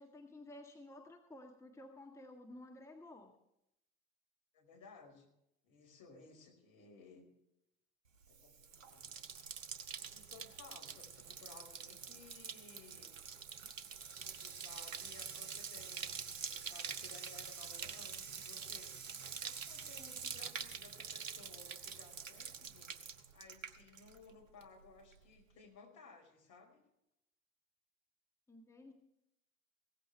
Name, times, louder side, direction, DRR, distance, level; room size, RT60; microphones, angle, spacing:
voice 1, 0.0-3.4 28.5-28.9, left 1 dB, 5° left, 2 dB, 1.6 m, -53 dB
voice 2, 4.5-5.3 5.6-7.3 8.3-9.2 10.1-13.2 14.1-19.0 19.3-23.0 23.3-26.8, left 4 dB, 50° left, 2 dB, 4.9 m, -59 dB
Bathtub (filling or washing), 8.2-24.3 24.6-25.1, right 6 dB, 70° right, 1.1 m, -46 dB
16.5 x 14.5 x 3.4 m, 0.82 s
figure-of-eight pair, 65°, 40 cm